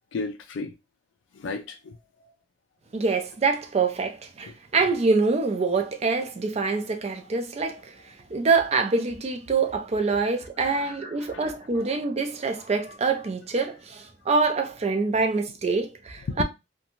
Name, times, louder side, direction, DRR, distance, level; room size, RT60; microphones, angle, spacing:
voice 1, 0.1-0.7 1.4-2.0 2.2-2.3 10.6-10.9 11.2-11.5 16.3-16.4, left 4 dB, 80° left, 0.4 m, -33 dB
voice 2, 2.9-7.9 8.3-16.4, right 4 dB, 35° right, 0.4 m, -25 dB
2.6 x 2.2 x 2.9 m
head